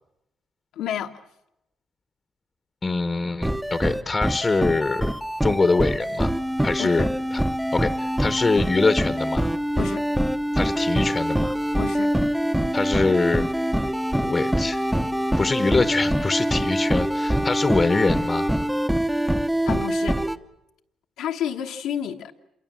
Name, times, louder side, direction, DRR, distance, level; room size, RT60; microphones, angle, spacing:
voice 1, 0.8-1.1 6.8-7.1 9.8-10.0 11.8-12.1 19.0-19.1 19.7-20.2 21.2-22.3, left 9 dB, 85° left, 2 dB, 1.3 m, -30 dB
voice 2, 2.8-5.2 5.4-6.3 6.6-7.0 7.3-7.4 7.7-9.5 10.5-11.5 12.7-13.5 14.2-14.8 15.4-18.5, left 3 dB, 25° left, 11 dB, 1.0 m, -24 dB
sound 1, 3.4-20.4, equal, 5° right, 0.9 m, -24 dB
27.0 x 22.5 x 7.5 m, 0.87 s
cardioid pair, 90°, 0 cm